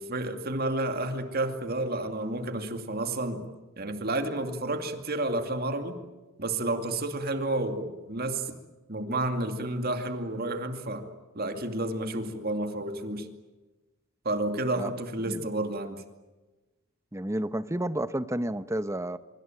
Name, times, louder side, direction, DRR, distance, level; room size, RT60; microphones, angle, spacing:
voice 1, 0.0-3.5 3.8-6.0 6.4-8.5 8.9-11.1 11.3-13.3 14.2-16.0, right 2 dB, 45° right, 7 dB, 2.4 m, -30 dB
voice 2, 17.1-19.2, right 1 dB, 15° right, 13 dB, 0.9 m, -31 dB
25.0 x 24.0 x 9.0 m, 1.1 s
head